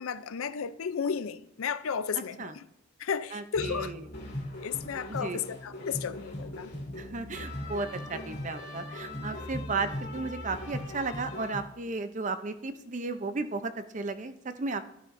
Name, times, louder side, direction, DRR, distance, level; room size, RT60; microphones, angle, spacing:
voice 1, 0.0-2.6 3.0-3.9 4.6-6.7, left 6 dB, 85° left, 0.5 m, -33 dB
voice 2, 2.1-2.6 3.3-4.0 5.1-5.5 7.0-14.8, right 3 dB, 35° right, 0.5 m, -34 dB
sound 1, 3.5-11.6, left 1 dB, 50° left, 2.3 m, -39 dB
12.0 x 11.0 x 2.6 m
head